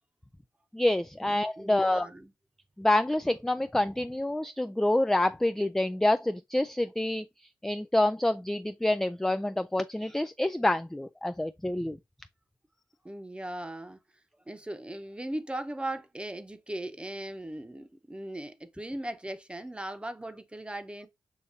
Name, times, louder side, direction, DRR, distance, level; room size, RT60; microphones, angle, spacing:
voice 1, 0.7-2.1 2.8-7.2 7.6-12.0, left 1 dB, 5° left, 0.3 m, -27 dB
voice 2, 1.6-2.3 13.0-14.0 14.5-21.1, right 1 dB, 15° right, 0.9 m, -38 dB
6.6 x 2.6 x 2.6 m
supercardioid pair, 45°, 8 cm